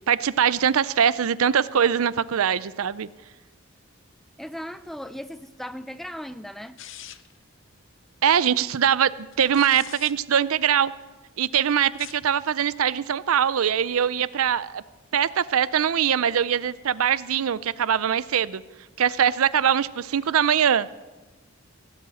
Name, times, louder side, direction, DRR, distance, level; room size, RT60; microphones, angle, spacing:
voice 1, 0.1-3.1 8.2-10.9 11.4-14.8 15.1-18.6 19.0-20.9, right 8 dB, 80° right, 17 dB, 0.5 m, -22 dB
voice 2, 4.4-6.8, equal, ahead, 13 dB, 0.4 m, -37 dB
sound 1, 6.8-7.4 9.3-10.1 11.8-12.3, left 12 dB, 60° left, 0.6 m, -43 dB
16.5 x 7.8 x 9.0 m, 1.2 s
head